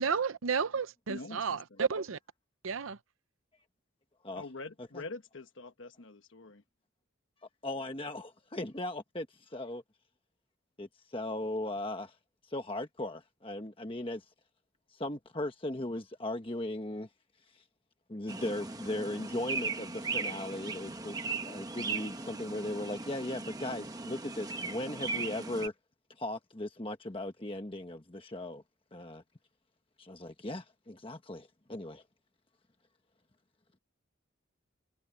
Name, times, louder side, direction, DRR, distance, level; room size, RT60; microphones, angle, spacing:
voice 1, 0.0-2.2 2.6-3.0, right 6 dB, 80° right, 0.6 m, -32 dB
voice 2, 1.1-1.4 1.7-1.8 4.4-6.6, left 3 dB, 70° left, 1.2 m, -44 dB
voice 3, 7.6-9.8 10.8-12.1 12.4-14.2 14.9-17.1 17.5-17.6 18.1-25.7 26.2-28.6 28.9-29.2 30.0-32.0, left 1 dB, 25° left, 1.2 m, -38 dB
sound 1, 18.3-25.7, right 4 dB, 20° right, 1.0 m, -38 dB
head